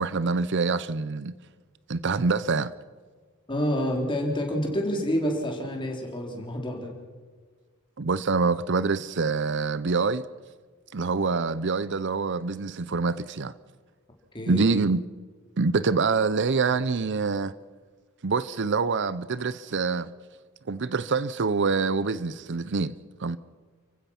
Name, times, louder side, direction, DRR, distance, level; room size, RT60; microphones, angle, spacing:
voice 1, 0.0-1.3 1.9-2.7 8.0-10.2 10.9-13.5 14.5-15.0 15.6-17.5 18.2-20.1 20.7-23.4, right 4 dB, 55° right, 0.6 m, -25 dB
voice 2, 3.5-6.9 14.3-14.7, equal, 20° left, 4.1 m, -28 dB
30.0 x 15.5 x 5.9 m
head